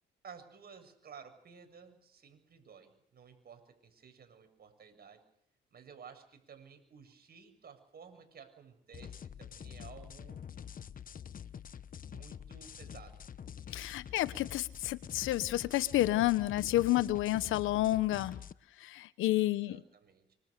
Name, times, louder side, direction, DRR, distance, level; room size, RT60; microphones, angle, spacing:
voice 1, 0.2-5.2 5.7-10.4 12.1-13.2 19.3-20.3, right 6 dB, 50° right, 7.6 m, -54 dB
sound 1, 8.9-18.5, left 8 dB, 45° left, 1.0 m, -47 dB
voice 2, 13.7-18.4 18.8-19.8, left 15 dB, 90° left, 1.1 m, -30 dB
26.0 x 26.0 x 6.8 m
cardioid pair, 90°, 20 cm